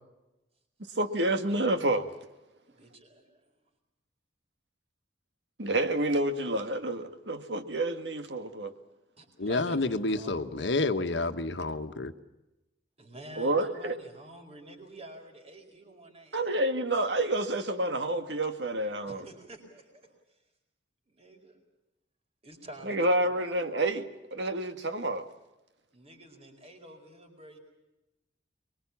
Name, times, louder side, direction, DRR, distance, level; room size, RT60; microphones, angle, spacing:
voice 1, 0.9-2.1 5.6-8.7 13.4-14.0 16.3-19.2 22.8-25.3, right 1 dB, 75° right, 1.8 m, -29 dB
voice 2, 2.7-3.5 9.2-10.3 13.0-16.6 19.0-19.9 21.1-21.6 22.4-23.8 25.9-27.6, right 1 dB, 35° right, 4.7 m, -49 dB
voice 3, 9.4-12.1, left 2 dB, 80° left, 1.3 m, -29 dB
24.0 x 22.5 x 7.2 m
head